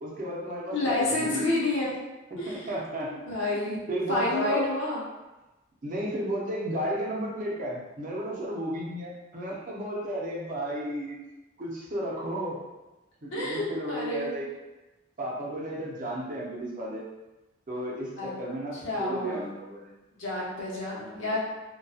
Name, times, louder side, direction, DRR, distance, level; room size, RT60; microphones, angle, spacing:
voice 1, 0.0-1.7 2.3-3.1 3.6-4.6 5.8-11.2 11.6-12.6 13.2-14.5 15.2-17.0 17.7-19.9 21.0-21.4, equal, 45° right, -4 dB, 0.5 m, -33 dB
voice 2, 0.7-1.9 2.4-2.8 3.1-5.0 13.3-14.3 18.2-18.3 18.7-19.4 20.2-21.4, left 2 dB, 80° left, -6 dB, 0.8 m, -29 dB
2.5 x 2.2 x 2.3 m, 1.1 s
head